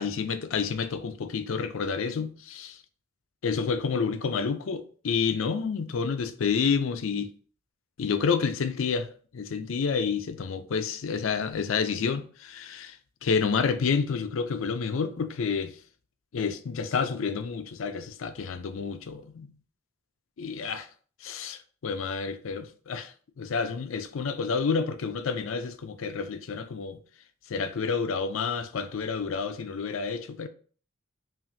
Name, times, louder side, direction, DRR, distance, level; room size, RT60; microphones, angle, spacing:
voice 1, 0.0-2.8 3.4-7.3 8.0-13.0 13.2-15.8 16.3-19.5 20.4-20.9 21.2-27.0 27.5-30.5, left 5 dB, 65° left, 0.4 m, -29 dB
5.7 x 2.5 x 2.6 m
head